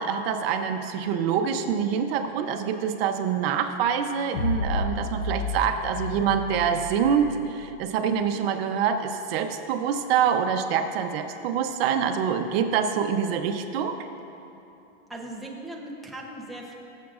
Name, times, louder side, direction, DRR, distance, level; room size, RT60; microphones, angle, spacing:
voice 1, 0.0-14.0, right 7 dB, 65° right, 7 dB, 0.8 m, -25 dB
sound 1, 4.3-7.7, left 3 dB, 85° left, 0.9 m, -31 dB
voice 2, 15.1-16.7, right 1 dB, ahead, -2 dB, 0.7 m, -38 dB
20.5 x 7.3 x 2.5 m, 2.8 s
supercardioid pair, 145°, 32 cm